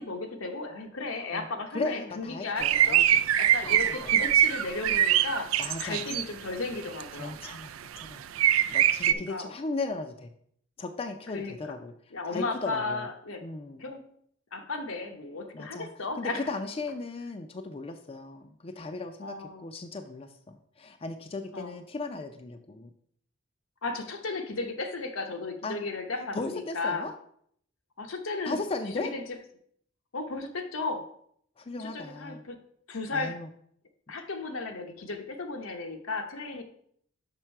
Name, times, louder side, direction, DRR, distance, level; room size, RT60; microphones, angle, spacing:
voice 1, 0.0-3.0 3.4-7.4 9.1-9.5 11.3-11.8 12.1-13.4 13.8-14.0 14.5-16.5 19.2-19.7 21.5-21.7 23.8-27.1 28.0-28.6 28.9-29.2 30.1-31.0 31.8-32.6 32.9-33.4 34.1-36.6, left 3 dB, 85° left, 4 dB, 0.9 m, -35 dB
voice 2, 1.7-3.3 3.6-4.3 5.6-6.2 7.1-8.3 8.7-10.3 10.8-11.9 12.3-13.1 13.4-13.8 15.5-22.9 25.6-25.8 26.3-27.1 28.5-29.1 31.6-32.5 33.1-33.5, left 3 dB, 30° left, 7 dB, 0.4 m, -37 dB
sound 1, 2.6-6.2 6.8-7.0 7.4-7.6 8.0-8.1 8.4-9.1, right 11 dB, 80° right, 0.4 m, -23 dB
5.9 x 5.5 x 4.4 m, 0.65 s
head